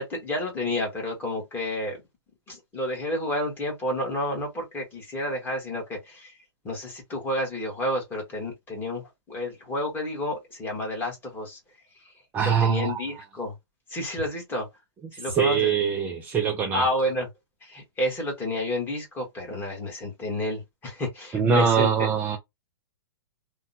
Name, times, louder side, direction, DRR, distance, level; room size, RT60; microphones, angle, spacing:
voice 1, 0.0-2.0 2.5-6.3 6.6-11.6 12.0-12.1 12.4-13.5 13.9-14.7 15.1-15.7 16.7-17.3 17.6-22.1, left 1 dB, 15° left, 1.3 m, -30 dB
voice 2, 12.3-13.0 15.4-16.8 21.3-22.4, right 6 dB, 10° right, 0.3 m, -23 dB
3.4 x 2.2 x 2.6 m
hypercardioid pair, 150°, 13 cm